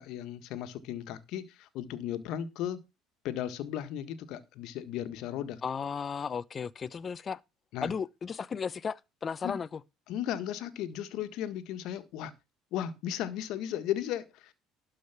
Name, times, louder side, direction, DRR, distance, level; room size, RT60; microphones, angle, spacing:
voice 1, 0.0-2.8 3.2-5.6 7.7-7.9 9.4-9.6 10.1-12.3 12.7-14.5, left 11 dB, 70° left, 1.6 m, -35 dB
voice 2, 5.6-7.4 7.8-9.8, left 6 dB, 35° left, 0.8 m, -35 dB
12.5 x 5.1 x 5.9 m
supercardioid pair, 90°, 0 cm